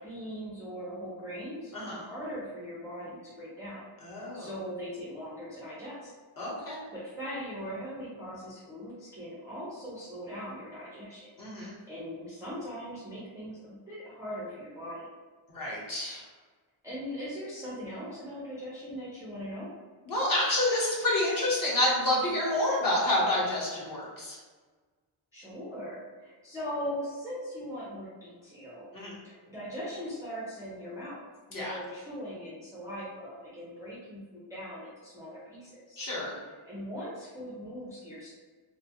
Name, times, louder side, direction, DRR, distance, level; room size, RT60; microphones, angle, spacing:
voice 1, 0.0-3.9 4.3-6.1 6.9-11.3 11.6-15.1 16.8-19.7 25.3-36.0 36.7-38.3, equal, 5° right, -8 dB, 0.4 m, -40 dB
voice 2, 4.0-4.5 6.4-6.8 11.4-11.7 15.5-16.2 20.1-24.4 28.9-29.2 31.5-31.8 36.0-36.4, left 1 dB, 40° left, -5 dB, 0.9 m, -28 dB
2.6 x 2.2 x 2.7 m, 1.4 s
wide cardioid pair, 165°, 50 cm